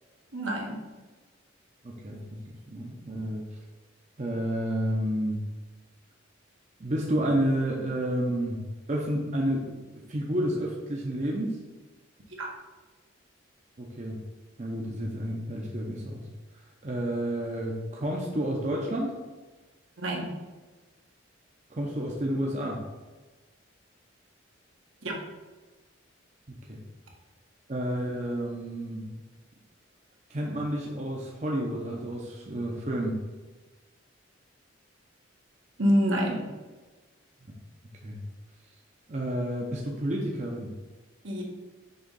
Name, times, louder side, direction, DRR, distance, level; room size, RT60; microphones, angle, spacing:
voice 1, 0.3-0.8 12.4-12.5 20.0-20.3 25.0-25.1 35.8-36.5 41.2-41.4, equal, 75° right, -1 dB, 1.3 m, -27 dB
voice 2, 1.8-3.6 4.2-5.4 6.8-8.6 8.9-11.5 13.8-14.2 14.6-16.3 16.8-19.1 21.7-22.8 26.7-26.8 27.7-29.1 30.3-33.2 38.0-38.2 39.1-40.7, right 1 dB, 35° right, -2 dB, 0.7 m, -30 dB
6.3 x 3.1 x 5.3 m, 1.3 s
head